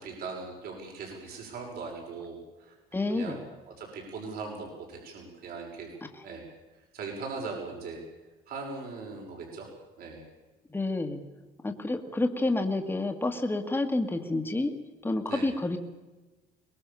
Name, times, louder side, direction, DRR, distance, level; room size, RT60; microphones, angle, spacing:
voice 1, 0.0-2.7 3.1-3.4 3.8-5.9 6.2-6.5 6.9-8.0 8.5-9.7 10.0-10.2 15.3-15.5, right 4 dB, 65° right, 0 dB, 6.2 m, -39 dB
voice 2, 2.9-3.4 6.0-6.3 10.7-11.2 11.6-14.7 15.0-15.8, left 2 dB, 10° left, 4 dB, 2.0 m, -29 dB
23.5 x 20.0 x 7.1 m, 1.2 s
cardioid pair, 110°, 17 cm